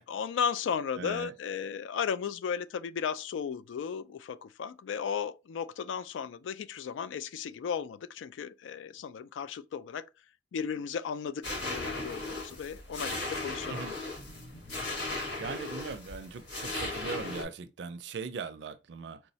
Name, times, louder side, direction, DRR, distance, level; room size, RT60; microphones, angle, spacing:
voice 1, 0.1-10.1 10.5-13.9, left 7 dB, 90° left, 0.3 m, -35 dB
voice 2, 1.0-1.3 13.7-13.9 15.4-19.2, right 5 dB, 65° right, 0.4 m, -39 dB
sound 1, 11.4-17.4, left 2 dB, 70° left, 1.2 m, -37 dB
4.5 x 2.1 x 2.7 m
head